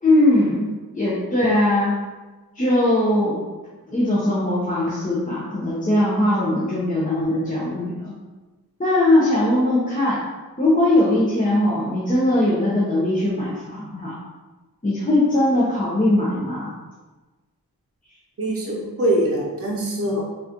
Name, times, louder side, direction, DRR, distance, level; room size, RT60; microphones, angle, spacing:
voice 1, 0.0-2.0 2.5-3.4 3.9-8.1 8.8-10.2 10.6-14.1 14.8-16.7, left 1 dB, 20° left, -8 dB, 0.9 m, -20 dB
voice 2, 18.4-20.2, right 1 dB, 35° right, -3 dB, 0.9 m, -23 dB
3.8 x 2.6 x 2.9 m, 1.3 s
cardioid pair, 50°, 38 cm